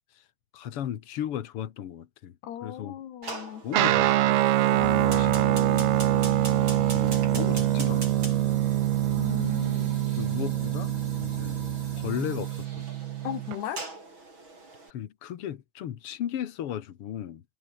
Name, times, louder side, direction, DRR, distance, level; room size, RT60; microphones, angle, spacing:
voice 1, 0.5-2.4 2.6-2.9 3.6-4.4 5.0-5.9 6.9-8.3 10.2-11.7 11.9-12.9 14.9-17.4, left 10 dB, 70° left, 1.3 m, -36 dB
voice 2, 2.4-3.7 9.1-10.0 13.2-13.8, left 10 dB, 85° left, 4.3 m, -37 dB
Fire, 3.2-14.9, right 3 dB, 30° right, 7.2 m, -43 dB
Guitar, 3.7-13.6, right 14 dB, 80° right, 3.2 m, -25 dB
Brass instrument, 4.7-12.2, left 3 dB, 20° left, 2.1 m, -39 dB
omnidirectional pair, 4.6 m